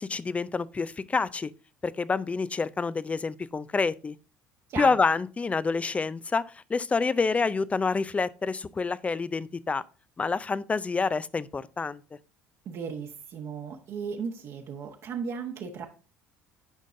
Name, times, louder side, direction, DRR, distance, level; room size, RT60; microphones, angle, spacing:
voice 1, 0.0-1.5 1.8-4.2 4.8-9.8 10.2-12.0, left 4 dB, 20° left, 0.5 m, -28 dB
voice 2, 12.6-15.9, right 6 dB, 55° right, 1.2 m, -36 dB
9.9 x 5.2 x 2.6 m
hypercardioid pair, 65°, 6 cm